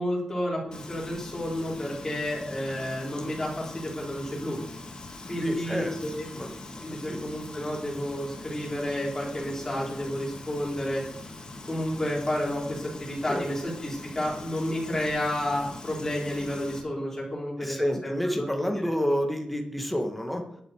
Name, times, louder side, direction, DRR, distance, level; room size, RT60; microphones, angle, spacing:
voice 1, 0.0-4.6 5.3-6.3 6.8-11.0 11.6-18.1 18.4-18.5, left 1 dB, 20° left, -5 dB, 5.1 m, -31 dB
Frying (food), 0.7-16.8, left 2 dB, 40° left, 2.1 m, -42 dB
voice 2, 5.4-6.0 6.3-6.6 7.1-7.2 13.3-13.4 17.6-20.4, equal, 5° left, 3 dB, 1.9 m, -29 dB
11.0 x 9.3 x 4.9 m, 0.75 s
wide cardioid pair, 150°, 2 cm